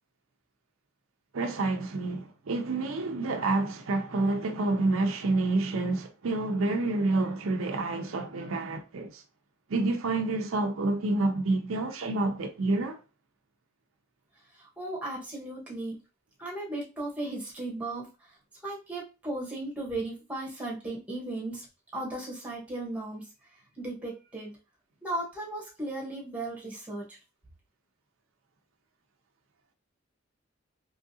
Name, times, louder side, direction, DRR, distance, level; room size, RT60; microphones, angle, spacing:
voice 1, 1.3-9.2 9.7-13.0, right 2 dB, 75° right, 0.5 m, -28 dB
voice 2, 14.5-16.0 16.4-18.4 18.6-21.7 21.9-24.6 25.0-27.2, right 2 dB, 5° right, 1.3 m, -36 dB
3.6 x 3.1 x 2.7 m
head